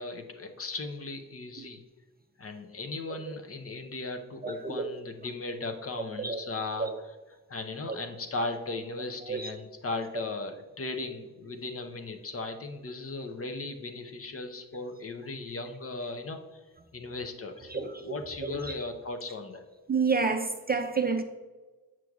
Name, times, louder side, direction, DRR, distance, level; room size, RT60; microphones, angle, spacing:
voice 1, 0.0-1.8 2.4-6.9 7.5-16.6 16.9-19.6, left 3 dB, 40° left, 6 dB, 0.7 m, -37 dB
voice 2, 4.4-4.9 6.2-6.4 6.8-7.0 7.9-8.0 9.2-9.5 11.5-11.6 17.7-18.9 19.9-21.2, right 4 dB, 25° right, 5 dB, 0.4 m, -30 dB
7.6 x 6.0 x 2.4 m, 1.2 s
cardioid pair, 100°, 38 cm